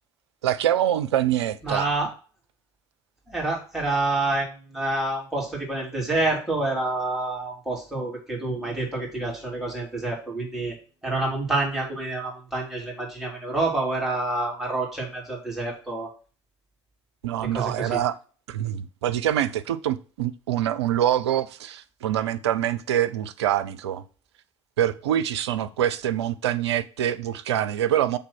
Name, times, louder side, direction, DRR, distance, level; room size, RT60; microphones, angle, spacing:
voice 1, 0.4-1.9 17.2-18.2 18.5-24.0 24.8-28.2, right 11 dB, 70° right, 0.5 m, -25 dB
voice 2, 1.6-2.1 3.3-10.7 11.0-16.1 17.5-18.0, right 2 dB, ahead, 3.7 m, -28 dB
7.3 x 3.5 x 6.0 m
figure-of-eight pair, 65°, 15 cm